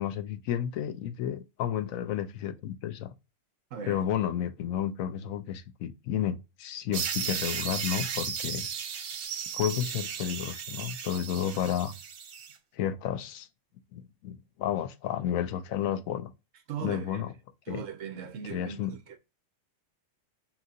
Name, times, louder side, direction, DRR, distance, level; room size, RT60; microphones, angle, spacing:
voice 1, 0.0-3.1 3.9-8.7 9.5-11.9 12.7-13.5 13.9-16.3 16.8-17.3 17.7-17.8 18.5-18.9, left 10 dB, 90° left, 1.0 m, -31 dB
voice 2, 3.7-4.0 16.7-17.2 17.7-19.2, right 7 dB, 70° right, 1.1 m, -39 dB
sound 1, 6.9-12.5, right 7 dB, 90° right, 1.1 m, -35 dB
5.8 x 2.5 x 2.7 m
omnidirectional pair, 1.4 m